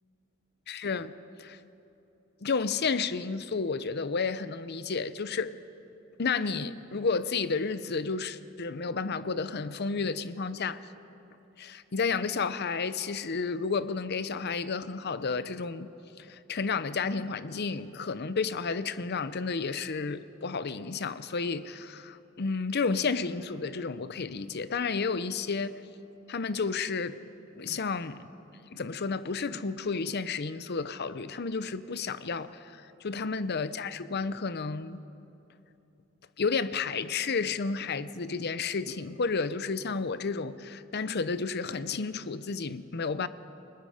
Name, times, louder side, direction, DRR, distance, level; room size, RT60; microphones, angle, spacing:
voice 1, 0.7-1.1 1.4-1.6 2.4-5.5 6.2-10.8 11.6-15.9 16.2-25.8 26.3-27.2 27.5-28.2 28.7-35.0 36.4-43.3, left 4 dB, 50° left, 0.7 m, -31 dB
29.5 x 19.0 x 5.1 m
head